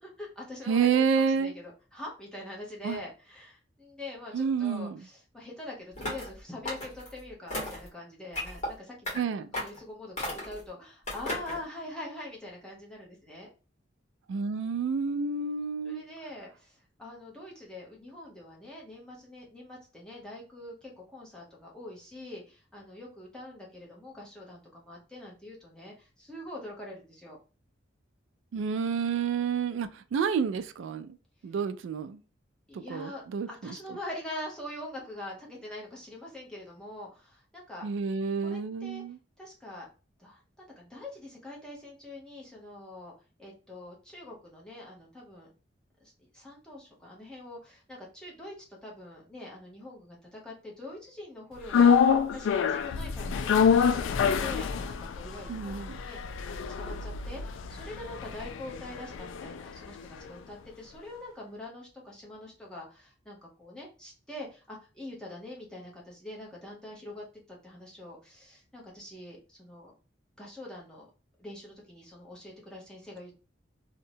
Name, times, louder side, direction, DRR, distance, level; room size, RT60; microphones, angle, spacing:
voice 1, 0.0-9.1 9.6-13.5 15.8-27.4 32.7-37.9 38.4-39.0 39.4-39.9 40.2-43.1 43.4-45.5 46.0-56.2 56.4-69.9 70.4-71.1 71.4-73.3, left 1 dB, 5° left, 0.9 m, -44 dB
voice 2, 0.7-1.5 2.8-3.0 4.3-5.0 9.2-9.5 14.3-16.0 28.5-31.1 31.4-32.2 32.7-33.7 37.8-39.2 55.5-56.0, right 6 dB, 85° right, 0.3 m, -29 dB
sound 1, 6.0-6.3 6.7-7.1 7.5-7.9 8.3-8.7 9.1-9.2 9.5-9.8 10.2-10.6 11.1-11.6, left 1 dB, 40° left, 1.3 m, -34 dB
sound 2, 51.7-60.0 60.3-60.4, left 6 dB, 90° left, 0.3 m, -26 dB
2.7 x 2.1 x 2.7 m
head